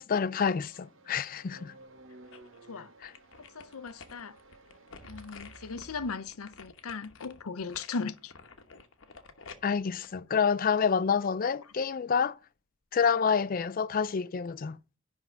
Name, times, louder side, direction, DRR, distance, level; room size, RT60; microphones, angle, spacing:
voice 1, 0.0-1.7 3.0-3.1 9.6-12.4 12.9-14.8, left 6 dB, 40° left, 0.4 m, -28 dB
sound 1, 0.6-6.1, right 2 dB, 60° right, 1.0 m, -54 dB
sound 2, 1.8-2.6 3.0-11.1 11.5-11.6, left 5 dB, 60° left, 1.1 m, -52 dB
voice 2, 3.4-4.4 5.0-8.3, left 4 dB, 75° left, 0.7 m, -38 dB
10.5 x 3.6 x 7.1 m
head